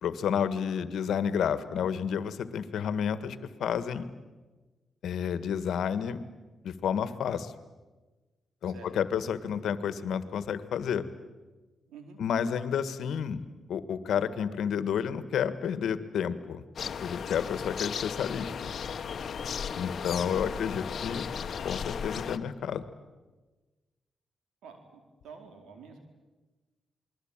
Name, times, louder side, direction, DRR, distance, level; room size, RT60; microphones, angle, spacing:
voice 1, 0.0-4.1 5.0-6.2 6.6-7.5 8.6-11.1 12.2-13.4 13.7-16.6 17.0-18.7 19.8-21.3 21.6-22.8, left 8 dB, 80° left, 13 dB, 1.5 m, -30 dB
voice 2, 11.9-12.2 19.8-20.7 24.6-26.0, right 4 dB, 90° right, 5 dB, 4.6 m, -50 dB
sound 1, 16.8-22.4, left 7 dB, 60° left, 1.3 m, -35 dB
28.0 x 21.5 x 9.0 m, 1.2 s
cardioid pair, 75°, 0 cm